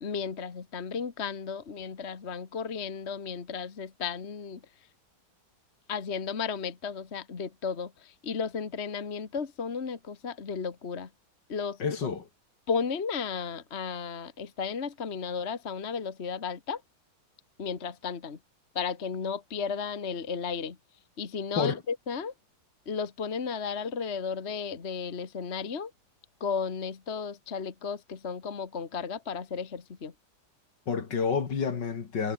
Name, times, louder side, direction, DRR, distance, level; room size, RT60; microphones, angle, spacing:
voice 1, 0.0-4.6 5.9-11.1 11.5-11.8 12.7-16.8 17.6-18.4 18.7-20.8 21.2-22.3 22.9-25.9 26.4-30.1, left 6 dB, 35° left, 1.6 m, -34 dB
voice 2, 11.8-12.3 21.6-21.8 30.9-32.3, left 6 dB, 55° left, 2.6 m, -29 dB
omnidirectional pair, 2.3 m